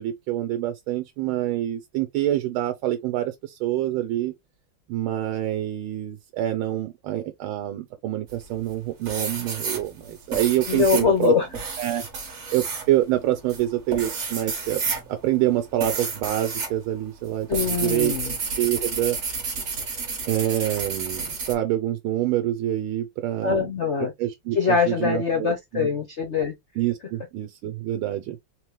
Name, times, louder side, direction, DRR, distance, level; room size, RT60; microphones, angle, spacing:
voice 1, 0.0-4.3 4.9-11.3 11.8-12.1 12.5-14.8 15.1-17.5 17.8-19.2 20.3-23.7 24.2-25.9 26.8-28.4, right 13 dB, 75° right, 1.4 m, -26 dB
sound 1, 8.3-8.7 9.1-16.8 17.0-21.5, right 4 dB, 45° right, 1.2 m, -31 dB
voice 2, 10.7-11.5 17.5-18.3 23.4-24.1 24.5-26.6, left 6 dB, 70° left, 0.6 m, -23 dB
3.9 x 2.9 x 3.1 m
omnidirectional pair, 2.3 m